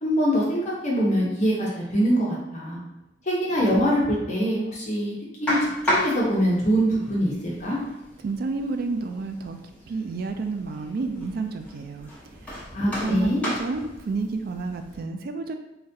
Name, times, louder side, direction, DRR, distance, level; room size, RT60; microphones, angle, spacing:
voice 1, 0.0-2.8 3.3-5.1 5.4-5.6 5.8-7.8 12.7-13.4, equal, 45° left, -5 dB, 0.7 m, -23 dB
sound 1, 5.5-15.0, left 1 dB, 10° left, 0.9 m, -34 dB
voice 2, 8.2-9.6 9.9-12.1 12.4-15.6, right 3 dB, 60° right, 6 dB, 0.3 m, -30 dB
3.8 x 2.2 x 2.6 m, 0.91 s
head